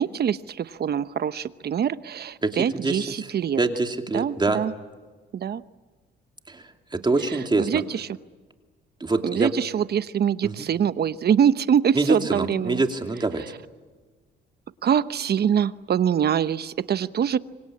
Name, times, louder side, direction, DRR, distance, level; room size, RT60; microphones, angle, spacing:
voice 1, 0.0-3.6 4.1-4.7 5.3-5.6 7.2-8.1 9.2-12.8 14.8-17.4, right 8 dB, 55° right, 14 dB, 1.0 m, -24 dB
voice 2, 2.4-3.1 3.6-4.6 6.5-6.6 6.9-7.8 9.0-9.5 10.4-10.5 11.9-13.4, right 3 dB, 20° right, 5 dB, 2.7 m, -24 dB
26.0 x 25.0 x 8.7 m, 1.4 s
cardioid pair, 90°, 20 cm